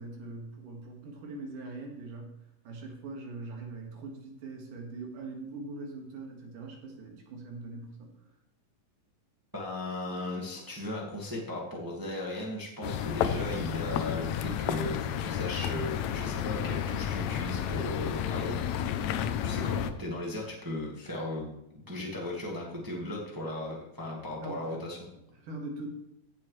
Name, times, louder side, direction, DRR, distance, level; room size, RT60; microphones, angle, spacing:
voice 1, 0.0-2.3 2.6-8.1 24.4-24.9 25.4-25.9, right 3 dB, 70° right, 1 dB, 3.2 m, -42 dB
voice 2, 9.5-18.6 19.4-25.1, left 1 dB, 25° right, -2 dB, 0.4 m, -37 dB
sound 1, 12.8-19.9, left 9 dB, 85° left, 1.6 m, -31 dB
15.5 x 7.6 x 3.2 m, 0.85 s
omnidirectional pair, 3.9 m